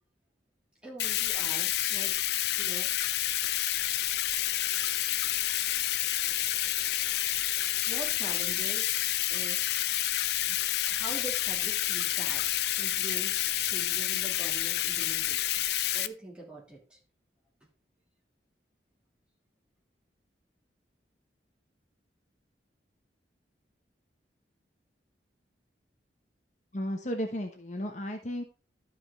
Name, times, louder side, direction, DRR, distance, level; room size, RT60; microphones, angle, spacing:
voice 1, 0.8-2.1 2.5-2.9 7.8-9.7 10.5-10.6 10.9-12.4 12.8-17.0, right 2 dB, 5° right, -5 dB, 3.4 m, -44 dB
Bathtub (filling or washing), 1.0-16.1, left 13 dB, 65° left, 0.5 m, -29 dB
voice 2, 26.7-28.4, equal, 40° left, 4 dB, 1.1 m, -34 dB
12.0 x 5.2 x 4.1 m, 0.34 s
head